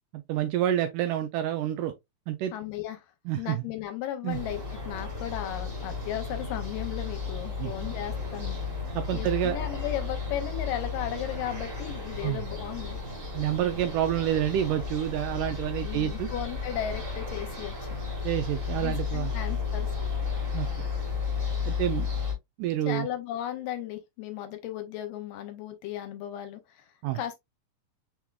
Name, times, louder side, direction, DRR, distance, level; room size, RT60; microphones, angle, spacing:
voice 1, 0.1-1.9 2.3-2.5 3.3-3.6 4.2-4.4 7.6-7.7 9.0-9.6 12.2-12.4 13.3-16.3 18.2-19.3 20.5-20.7 21.7-22.1 22.6-23.1 27.0-27.2, right 11 dB, 80° right, 1.9 m, -28 dB
voice 2, 2.5-3.1 3.4-8.6 9.1-13.0 15.8-18.0 18.8-19.9 22.8-26.9 27.1-27.3, left 11 dB, 75° left, 2.3 m, -35 dB
sound 1, 4.3-22.3, left 5 dB, 30° right, 1.1 m, -33 dB
6.0 x 3.5 x 2.3 m
omnidirectional pair, 4.1 m